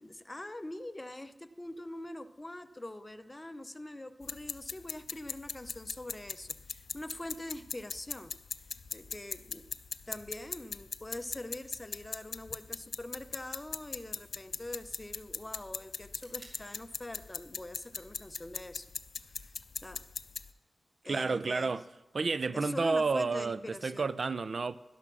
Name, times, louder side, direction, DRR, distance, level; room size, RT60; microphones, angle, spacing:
voice 1, 0.0-8.3 8.6-9.7 10.1-18.9 19.2-20.0 21.0-21.7 22.5-24.1, left 1 dB, 20° left, 0.6 m, -44 dB
sound 1, 4.2-20.5, left 5 dB, 75° left, 0.4 m, -41 dB
sound 2, 12.1-20.1, right 1 dB, 30° right, 3.0 m, -65 dB
voice 2, 21.1-21.8 22.1-24.7, right 4 dB, 55° right, 0.4 m, -30 dB
12.0 x 11.0 x 6.1 m
wide cardioid pair, 80°, 0 cm